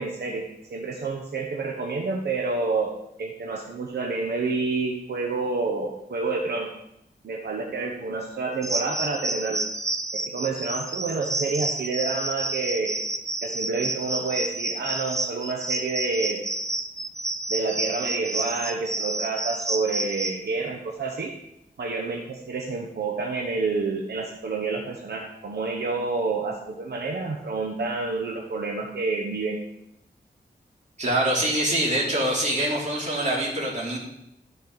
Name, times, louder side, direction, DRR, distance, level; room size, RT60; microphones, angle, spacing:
voice 1, 0.0-2.9 3.2-6.7 7.2-9.6 10.1-12.9 13.4-16.4 17.5-21.3 21.8-29.6, right 3 dB, 75° right, 1 dB, 1.0 m, -28 dB
sound 1, 8.6-20.4, right 2 dB, 20° right, 0.6 m, -30 dB
voice 2, 31.0-34.0, right 1 dB, 45° right, -4 dB, 3.0 m, -24 dB
13.5 x 5.0 x 4.0 m, 0.82 s
wide cardioid pair, 110°, 17 cm